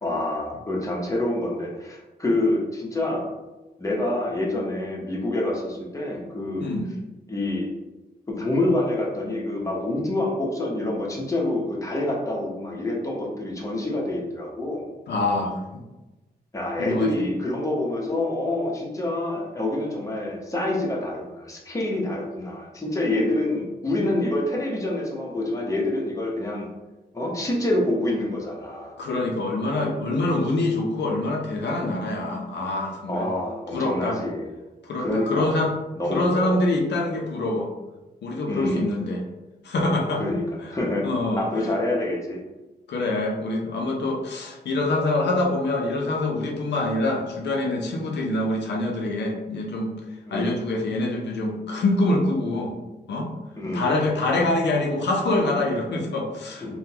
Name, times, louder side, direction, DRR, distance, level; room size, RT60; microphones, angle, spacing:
voice 1, 0.0-3.3 3.8-6.6 7.3-7.7 8.3-14.8 15.3-15.5 16.5-26.7 27.1-29.0 33.1-34.5 35.0-35.6 36.0-36.6 38.5-38.9 40.2-40.4 40.7-41.1 41.4-42.4 50.3-50.5 53.6-53.9 56.6-56.8, left 1 dB, 20° left, -3 dB, 0.8 m, -27 dB
voice 2, 15.1-15.8 16.8-17.3 29.0-33.3 33.7-34.2 34.8-35.7 36.1-37.7 38.2-39.2 39.6-40.2 40.6-40.7 41.0-41.7 42.9-49.9 50.3-52.7 53.1-53.3 53.7-56.8, left 2 dB, 80° left, 0 dB, 0.5 m, -25 dB
3.6 x 2.2 x 2.8 m, 1.1 s
wide cardioid pair, 95°, 18 cm